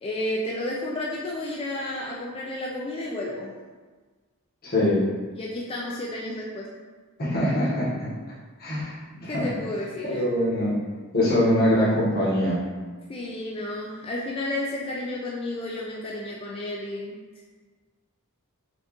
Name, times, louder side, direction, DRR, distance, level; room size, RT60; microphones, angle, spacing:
voice 1, 0.0-3.5 5.3-6.7 9.3-10.2 13.1-17.2, left 1 dB, 25° left, -3 dB, 0.3 m, -32 dB
voice 2, 4.6-5.0 7.2-8.1 8.6-9.5 10.0-10.8 11.1-12.6, left 1 dB, 45° left, -7 dB, 1.1 m, -23 dB
4.4 x 2.4 x 2.9 m, 1.4 s
head